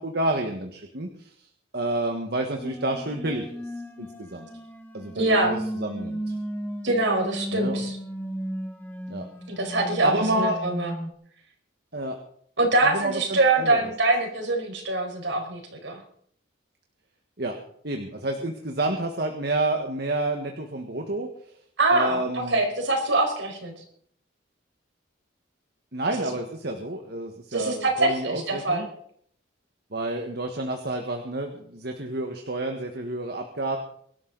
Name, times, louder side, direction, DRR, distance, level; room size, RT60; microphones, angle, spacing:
voice 1, 0.0-1.5 1.7-3.6 4.0-4.5 4.9-6.3 7.5-7.8 9.1-9.3 9.7-9.8 10.0-10.6 11.9-12.2 12.8-13.9 17.4-17.6 17.8-21.3 21.9-22.6 25.9-28.9 29.9-33.8, right 2 dB, 55° right, 3 dB, 1.6 m, -29 dB
sound 1, 2.6-11.1, equal, 10° left, 1.4 m, -34 dB
voice 2, 5.1-5.5 6.8-8.0 9.5-10.9 12.6-16.0 21.8-23.7 27.5-28.9, right 2 dB, 70° right, 2 dB, 4.9 m, -24 dB
23.5 x 12.5 x 4.1 m, 0.63 s
head